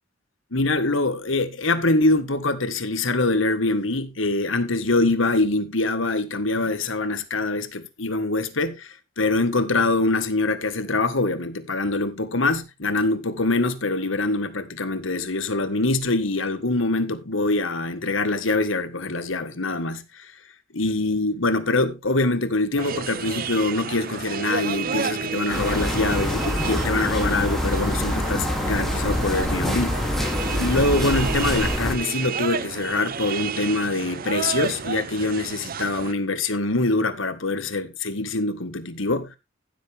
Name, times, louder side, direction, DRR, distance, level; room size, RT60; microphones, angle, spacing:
voice 1, 0.5-20.3 20.7-30.1 30.6-39.3, left 2 dB, 80° left, 1.7 m, -24 dB
sound 1, 22.8-36.1, right 6 dB, 50° right, 0.6 m, -31 dB
sound 2, 25.5-31.9, left 1 dB, ahead, 2.7 m, -25 dB
15.0 x 7.9 x 3.5 m
head